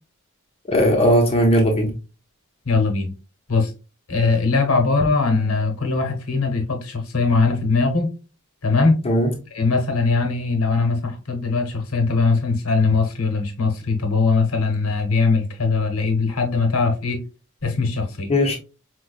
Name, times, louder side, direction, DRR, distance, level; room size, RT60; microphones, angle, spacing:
voice 1, 0.7-1.9 9.0-9.3 18.3-18.6, equal, 30° left, 0.6 m, -17 dB
voice 2, 2.7-3.1 3.5-3.7 4.1-8.1 8.6-9.0 9.5-17.2 17.6-18.3, left 4 dB, 90° left, 0.9 m, -20 dB
4.8 x 2.2 x 2.3 m
head